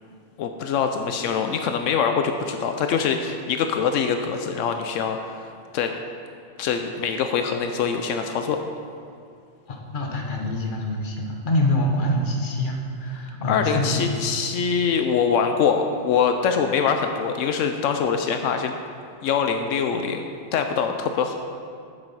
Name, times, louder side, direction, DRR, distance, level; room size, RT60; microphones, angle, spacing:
voice 1, 0.4-5.3 5.7-5.9 6.6-8.6 13.5-18.8 19.2-20.2 20.5-21.3, left 6 dB, 85° left, 6 dB, 0.9 m, -23 dB
voice 2, 9.9-14.2, left 1 dB, 45° left, 1 dB, 1.2 m, -25 dB
8.1 x 7.3 x 5.5 m, 2.3 s
omnidirectional pair, 1.3 m